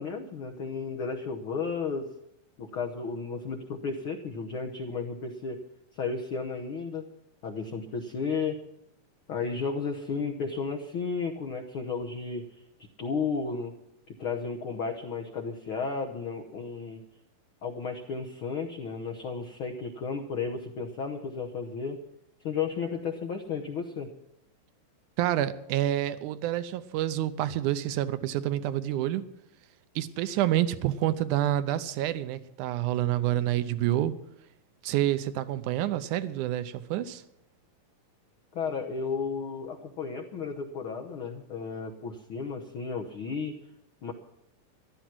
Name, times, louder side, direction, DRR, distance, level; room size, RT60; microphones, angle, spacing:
voice 1, 0.0-2.1 2.6-5.6 5.9-7.1 7.4-8.6 9.3-12.4 13.0-13.7 14.1-17.0 17.6-22.0 22.4-24.1 38.5-43.5 44.0-44.1, left 5 dB, 85° left, 2 dB, 1.1 m, -33 dB
voice 2, 25.2-29.3 30.0-34.1 34.8-37.2, right 13 dB, 75° right, 13 dB, 2.0 m, -28 dB
14.0 x 12.0 x 6.2 m, 0.82 s
omnidirectional pair, 4.0 m